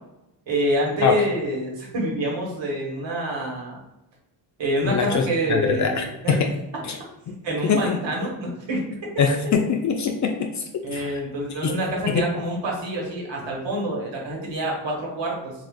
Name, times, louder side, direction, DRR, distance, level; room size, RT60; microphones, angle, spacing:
voice 1, 0.5-3.8 4.6-6.4 7.3-8.8 10.8-15.5, right 1 dB, 60° right, -2 dB, 1.3 m, -27 dB
voice 2, 4.8-6.5 6.8-7.0 7.6-8.0 9.2-10.6 10.9-11.2 11.6-11.7 12.1-12.2, left 5 dB, 40° left, 4 dB, 0.4 m, -23 dB
3.4 x 2.3 x 2.4 m, 0.93 s
supercardioid pair, 65°, 48 cm